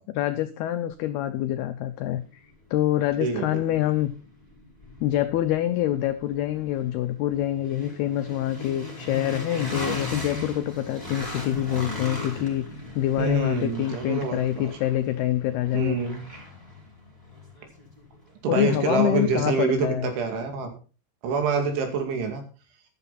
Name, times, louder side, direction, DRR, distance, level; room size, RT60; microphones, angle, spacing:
voice 1, 0.1-2.4 2.7-4.1 5.0-12.7 13.0-16.0 18.5-20.1, left 13 dB, 85° left, 9 dB, 2.2 m, -26 dB
sound 1, 2.1-2.2 2.7-18.7, left 2 dB, 10° right, 4.4 m, -38 dB
voice 2, 3.2-3.6 13.2-14.7 15.7-16.2 18.4-20.7 21.2-22.4, right 5 dB, 75° right, 4 dB, 4.7 m, -26 dB
12.5 x 11.5 x 4.1 m, 0.35 s
omnidirectional pair, 5.5 m